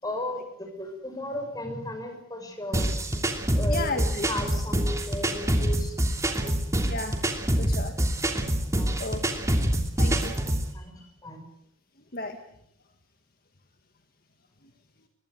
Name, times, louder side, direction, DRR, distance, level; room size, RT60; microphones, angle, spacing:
voice 1, 0.0-2.9 3.5-5.9 6.4-6.5 7.9-8.1 8.7-9.1 10.1-10.2 10.7-10.9 11.2-11.4, left 1 dB, 20° left, 5 dB, 6.2 m, -35 dB
sound 1, 2.7-10.7, right 1 dB, 15° right, 2.8 m, -26 dB
voice 2, 3.7-4.3 6.8-7.2 7.6-7.9 9.0-9.5 10.0-10.4 11.0-11.1 12.1-12.4, left 2 dB, 50° left, 5 dB, 1.9 m, -33 dB
24.0 x 22.0 x 7.9 m, 0.72 s
head